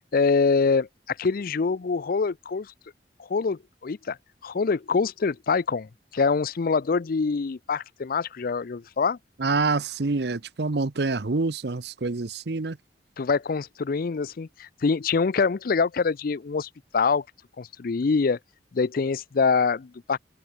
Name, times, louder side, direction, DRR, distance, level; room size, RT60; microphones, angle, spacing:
voice 1, 0.1-2.7 3.3-4.2 4.4-9.2 13.2-17.2 17.6-18.4 18.7-20.2, left 4 dB, 55° left, 0.5 m, -25 dB
voice 2, 9.4-12.8, right 3 dB, 65° right, 0.8 m, -26 dB
head